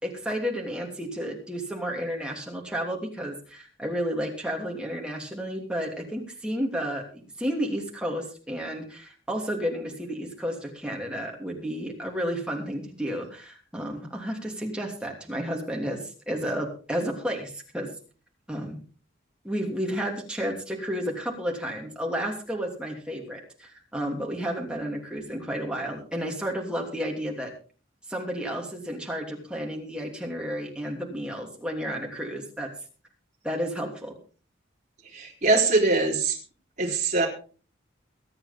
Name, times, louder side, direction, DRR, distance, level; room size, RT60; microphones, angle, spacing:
voice 1, 0.0-17.9 18.5-18.8 19.4-27.5 28.1-32.7 33.4-34.2 36.9-37.0, equal, 5° right, 0 dB, 3.0 m, -32 dB
voice 2, 35.1-36.4 36.8-37.3, right 3 dB, 40° right, -1 dB, 3.8 m, -22 dB
23.5 x 8.8 x 3.6 m, 0.38 s
head